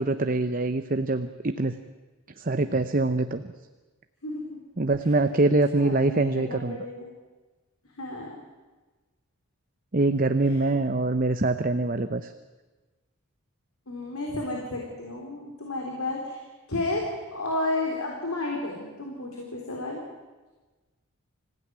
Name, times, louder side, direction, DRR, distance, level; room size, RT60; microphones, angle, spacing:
voice 1, 0.0-1.8 2.4-3.4 4.8-6.8 9.9-12.3, right 2 dB, 40° right, 9 dB, 0.8 m, -24 dB
voice 2, 4.2-4.6 5.8-7.1 8.0-8.4 10.5-10.6 13.9-16.4 16.7-20.0, left 2 dB, 80° left, 0 dB, 3.8 m, -32 dB
25.5 x 16.5 x 9.5 m, 1.2 s
head